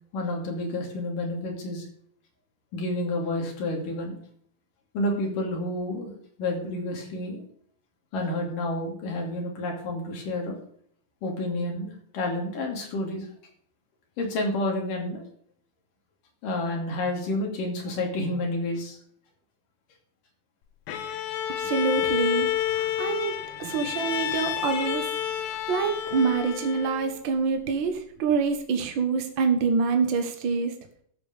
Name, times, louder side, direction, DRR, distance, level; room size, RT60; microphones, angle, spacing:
voice 1, 0.1-1.9 2.7-4.2 4.9-6.1 6.4-7.4 8.1-10.6 11.2-13.3 14.2-15.2 16.4-19.0, left 1 dB, 65° left, 1 dB, 4.2 m, -29 dB
Bowed string instrument, 20.9-27.2, left 11 dB, 80° left, 2.7 m, -29 dB
voice 2, 21.5-25.1 25.5-30.7, right 5 dB, 70° right, 5 dB, 1.1 m, -26 dB
13.5 x 5.3 x 6.6 m, 0.62 s
omnidirectional pair, 4.1 m